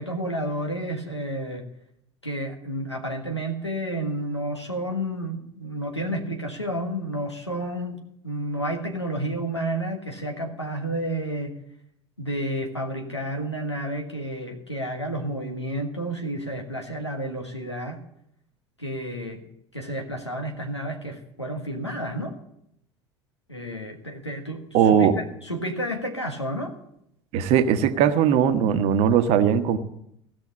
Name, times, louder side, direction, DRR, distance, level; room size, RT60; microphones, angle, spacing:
voice 1, 0.0-1.7 2.2-11.6 12.2-18.0 18.8-19.4 19.7-22.3 23.5-26.7, right 1 dB, 90° left, 2 dB, 1.6 m, -31 dB
voice 2, 24.7-25.1 27.3-29.8, right 8 dB, 50° right, 10 dB, 1.1 m, -19 dB
16.0 x 6.3 x 8.6 m, 0.76 s
figure-of-eight pair, 70°, 14 cm